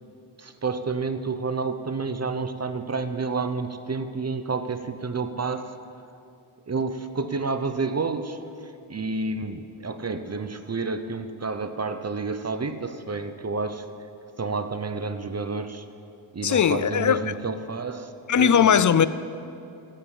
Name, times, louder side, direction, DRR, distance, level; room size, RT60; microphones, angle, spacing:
voice 1, 0.4-5.6 6.7-8.4 8.9-13.8 14.4-15.8 16.3-18.8, right 4 dB, 30° right, 0.7 m, -30 dB
voice 2, 16.4-17.2 18.3-19.1, left 8 dB, 40° left, 0.4 m, -19 dB
16.5 x 5.6 x 8.4 m
wide cardioid pair, 90°, 50 cm